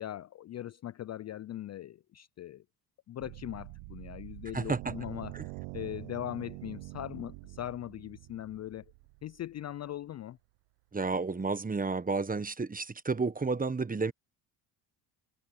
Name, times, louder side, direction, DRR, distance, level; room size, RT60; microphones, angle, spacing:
voice 1, 0.0-2.6 3.1-5.4 5.7-8.9 9.2-10.4, left 12 dB, 35° left, 0.5 m, -40 dB
sound 1, 3.2-9.7, right 26 dB, 80° right, 0.8 m, -45 dB
voice 2, 4.5-4.9 5.3-5.4 10.9-14.1, right 4 dB, 20° right, 1.2 m, -31 dB
supercardioid pair, 65°, 46 cm